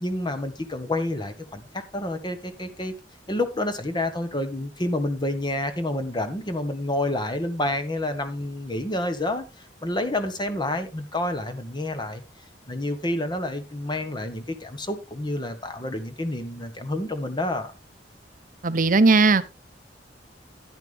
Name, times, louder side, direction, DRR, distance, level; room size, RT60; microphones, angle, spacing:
voice 1, 0.0-2.9 3.3-9.4 9.8-12.2 12.7-17.7, left 1 dB, 25° left, 1.5 m, -29 dB
voice 2, 18.6-19.4, right 3 dB, 45° right, 0.8 m, -17 dB
10.5 x 10.5 x 3.5 m
head